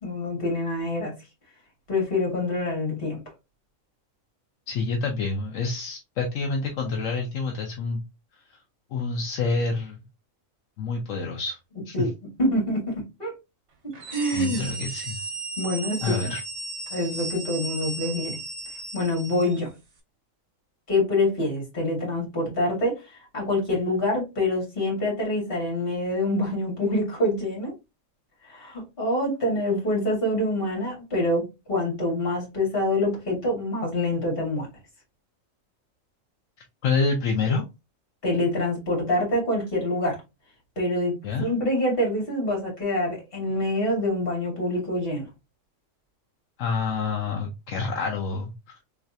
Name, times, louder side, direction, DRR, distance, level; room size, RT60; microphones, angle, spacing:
voice 1, 0.0-1.1 1.9-3.2 11.9-12.1 12.4-13.3 14.1-14.7 15.6-16.3 16.9-18.4 18.9-19.7 20.9-27.7 28.4-34.7 38.2-40.2 40.8-45.3, left 1 dB, 45° left, -2 dB, 2.2 m, -26 dB
voice 2, 4.7-8.0 8.5-8.6 8.9-10.0 10.8-11.6 11.9-12.1 14.3-15.2 16.0-16.4 36.8-37.6 41.2-41.5 46.6-48.7, left 4 dB, 75° left, 1 dB, 1.0 m, -27 dB
sound 1, 13.9-19.6, right 3 dB, 60° right, 1.3 m, -35 dB
3.4 x 3.2 x 2.6 m, 0.24 s
omnidirectional pair, 1.4 m